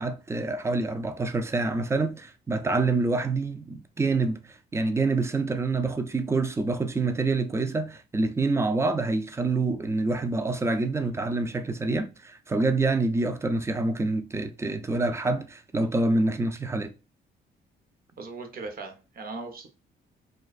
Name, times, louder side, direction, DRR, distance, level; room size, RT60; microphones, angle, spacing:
voice 1, 0.0-16.9, right 3 dB, 15° right, 0.3 m, -27 dB
voice 2, 18.2-19.7, right 3 dB, 50° right, 0.7 m, -38 dB
2.4 x 2.3 x 2.3 m
cardioid pair, 90°, 20 cm